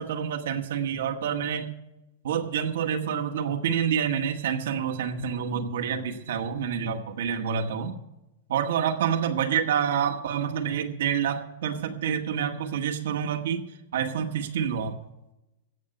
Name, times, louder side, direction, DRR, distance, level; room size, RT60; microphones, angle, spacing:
voice 1, 0.0-1.7 2.2-7.9 8.5-15.0, right 8 dB, 75° right, 3 dB, 1.5 m, -28 dB
15.5 x 6.7 x 7.8 m, 0.94 s
supercardioid pair, 160°, 0 cm